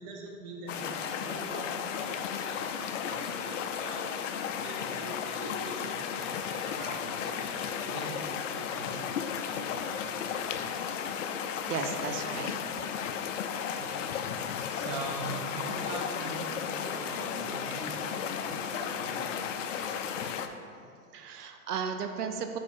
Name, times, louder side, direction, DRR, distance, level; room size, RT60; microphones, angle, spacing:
voice 1, 0.0-11.1 11.6-11.7 12.5-12.7 13.8-20.4, right 3 dB, 30° right, 0 dB, 0.9 m, -43 dB
sound 1, 0.7-20.5, left 7 dB, 55° left, 0.5 m, -34 dB
voice 2, 11.7-12.8 14.1-14.2 21.1-22.6, right 6 dB, 90° right, 6 dB, 0.7 m, -35 dB
5.1 x 4.8 x 4.3 m, 2.4 s
hypercardioid pair, 150°, 45 cm